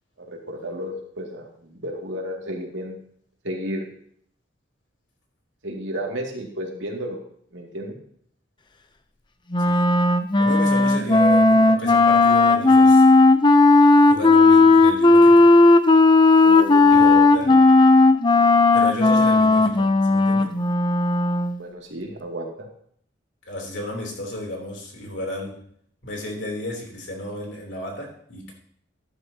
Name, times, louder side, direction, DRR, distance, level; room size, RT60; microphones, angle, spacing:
voice 1, 0.2-3.0 3.4-3.9 5.6-7.2 7.5-8.0 16.4-17.4 21.6-22.7, equal, 75° right, 0 dB, 2.4 m, -32 dB
Wind instrument woodwind instrument, 9.5-21.6, left 3 dB, 25° left, 0.7 m, -15 dB
voice 2, 10.4-13.0 14.0-15.5 16.9-17.1 17.3-17.6 18.7-20.5 23.4-25.6 26.0-28.5, left 1 dB, 70° left, 0 dB, 3.4 m, -33 dB
13.0 x 11.0 x 2.9 m, 0.64 s
head